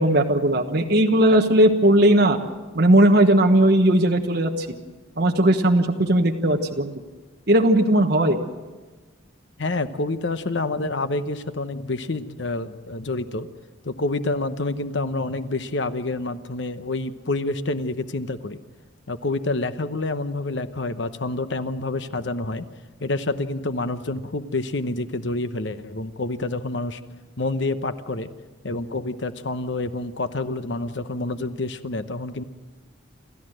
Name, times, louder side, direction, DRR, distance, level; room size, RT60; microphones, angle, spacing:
voice 1, 0.0-2.4 2.7-4.7 5.2-6.9 7.5-8.4, right 1 dB, 55° right, 2 dB, 1.3 m, -17 dB
voice 2, 9.6-13.5 13.8-18.6 19.1-22.7 23.0-27.0 27.4-28.3 28.6-32.4, left 2 dB, 65° left, 11 dB, 0.9 m, -28 dB
28.5 x 14.0 x 7.8 m, 1.3 s
head